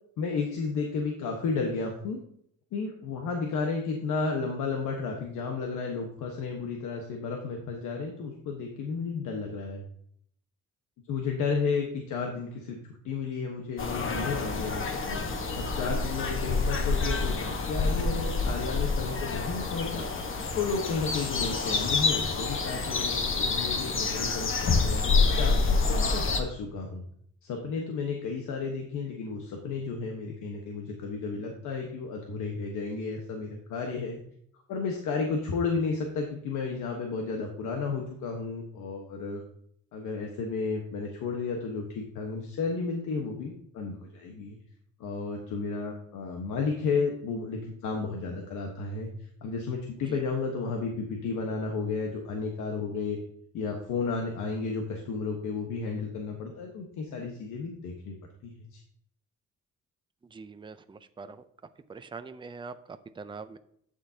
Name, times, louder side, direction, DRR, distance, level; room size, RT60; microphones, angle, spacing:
voice 1, 0.2-2.2 2.7-9.8 11.1-12.8 13.0-15.2 15.6-20.1 20.5-27.0 27.4-34.2 34.7-39.4 39.9-44.6 45.0-49.1 49.4-53.2 53.5-58.1 58.4-58.8, left 4 dB, 85° left, 2 dB, 1.3 m, -32 dB
sound 1, 13.8-26.4, left 4 dB, 45° left, 1.3 m, -28 dB
voice 2, 60.3-61.4 61.9-62.7 63.2-63.6, right 4 dB, 15° right, 10 dB, 0.6 m, -42 dB
11.5 x 6.7 x 2.8 m, 0.67 s
cardioid pair, 90°, 30 cm